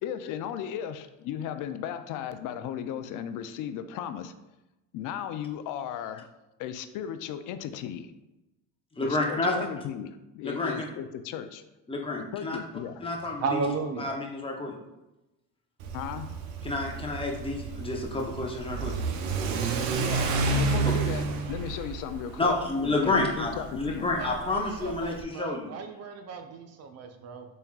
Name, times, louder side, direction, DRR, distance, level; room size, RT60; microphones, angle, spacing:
voice 1, 0.0-4.3 4.9-6.3 6.6-8.1 9.0-11.6 12.2-13.0 15.9-16.3 20.0-20.3 20.6-22.6 22.8-24.1, left 9 dB, 55° left, 10 dB, 0.5 m, -36 dB
voice 2, 9.0-9.5 10.4-10.9 11.9-12.6 13.0-13.6 14.0-14.7 16.6-18.9 20.8-20.9 22.4-25.7, left 2 dB, 15° left, 0 dB, 0.8 m, -29 dB
voice 3, 13.4-14.0 24.2-27.5, right 4 dB, 45° right, 6 dB, 0.5 m, -34 dB
Car / Accelerating revving vroom, 15.8-25.2, right 4 dB, 90° right, 0.6 m, -30 dB
4.3 x 3.4 x 2.3 m, 0.97 s
supercardioid pair, 85°, 39 cm